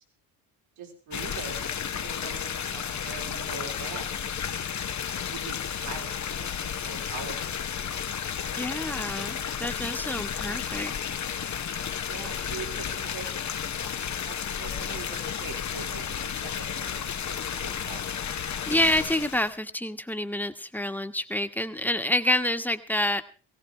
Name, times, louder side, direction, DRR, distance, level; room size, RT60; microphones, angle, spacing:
voice 1, 0.8-4.1 4.4-4.8 5.2-7.6 8.4-8.9 12.0-13.3 13.8-13.9 14.2-18.0, right 5 dB, 80° right, 1 dB, 3.6 m, -43 dB
sound 1, 1.1-19.6, left 8 dB, 35° left, 0.8 m, -32 dB
voice 2, 8.6-10.9 18.7-23.2, left 1 dB, 5° left, 7 dB, 1.3 m, -28 dB
18.5 x 17.0 x 3.3 m, 0.36 s
hypercardioid pair, 50°, 49 cm